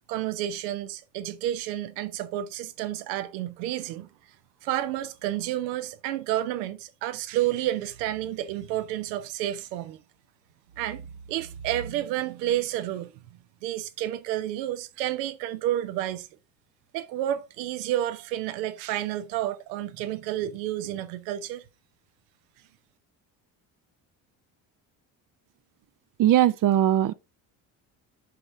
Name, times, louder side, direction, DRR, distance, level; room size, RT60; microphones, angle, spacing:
voice 1, 0.1-4.1 4.6-10.0 10.8-13.1 13.6-16.3 16.9-21.6, right 13 dB, 80° right, 0.8 m, -30 dB
voice 2, 26.2-27.1, right 12 dB, 40° right, 0.5 m, -20 dB
7.7 x 5.4 x 2.6 m
hypercardioid pair, 60°, 49 cm